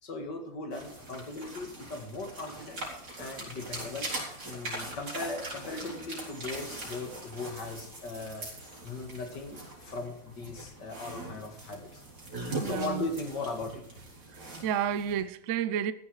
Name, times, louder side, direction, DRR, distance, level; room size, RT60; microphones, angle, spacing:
voice 1, 0.0-2.8 3.2-4.1 4.4-8.5 8.8-12.0 12.6-13.8, left 2 dB, 55° left, 2.5 m, -38 dB
sound 1, 0.7-15.2, right 2 dB, 45° right, 4.9 m, -41 dB
voice 2, 12.6-13.0 14.3-15.9, right 9 dB, 70° right, 0.7 m, -31 dB
15.0 x 11.0 x 4.8 m
omnidirectional pair, 2.3 m